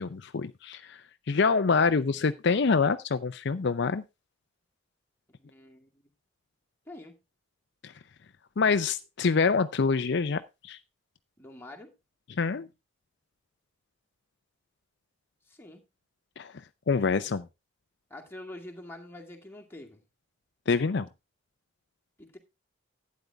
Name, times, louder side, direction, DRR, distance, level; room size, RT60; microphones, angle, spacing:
voice 1, 0.0-4.0 7.8-7.9 8.6-10.8 12.3-12.7 16.4-16.5 16.9-17.5 20.7-21.1, left 4 dB, 60° left, 0.5 m, -26 dB
voice 2, 5.4-6.0 6.9-7.2 11.4-11.9 15.4-15.9 18.1-20.0 22.2-22.4, left 1 dB, 10° left, 2.2 m, -46 dB
12.0 x 9.4 x 3.4 m
head